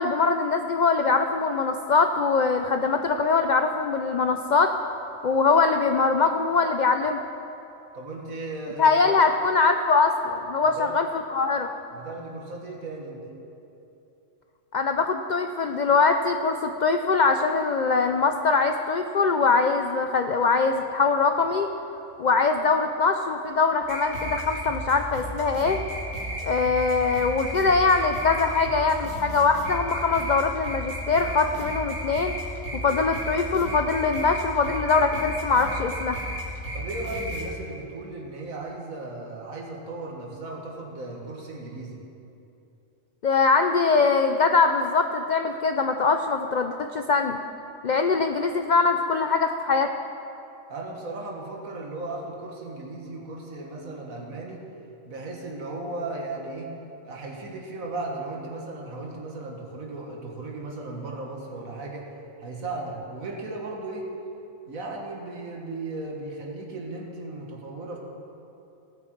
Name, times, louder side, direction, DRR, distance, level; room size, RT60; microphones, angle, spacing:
voice 1, 0.0-7.2 8.8-11.7 14.7-21.7 22.2-25.8 26.4-32.3 32.8-36.2 43.2-47.4 47.8-49.9, left 4 dB, 80° left, 6 dB, 0.4 m, -22 dB
voice 2, 7.9-9.3 10.8-11.0 11.9-13.2 36.7-42.0 50.7-54.6 55.1-56.7 57.0-62.1 62.4-64.1 64.6-68.0, right 2 dB, 85° right, -1 dB, 2.0 m, -36 dB
sound 1, 23.8-37.4, right 1 dB, 55° right, 2.7 m, -33 dB
17.5 x 8.4 x 4.6 m, 2.8 s
omnidirectional pair, 1.4 m